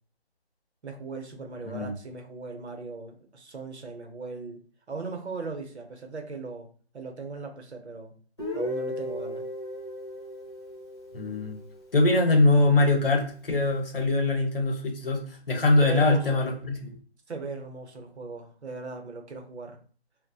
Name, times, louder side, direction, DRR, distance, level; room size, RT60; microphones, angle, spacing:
voice 1, 0.8-8.1 8.5-9.4 15.8-16.4 17.3-19.8, right 4 dB, 80° right, 4 dB, 0.7 m, -38 dB
Guitar, 8.4-12.2, equal, 25° left, 1.0 m, -36 dB
voice 2, 11.1-11.6 11.9-15.2 15.5-16.9, left 2 dB, 55° left, 3 dB, 0.8 m, -22 dB
2.6 x 2.1 x 2.3 m, 0.42 s
figure-of-eight pair, 180°, 33 cm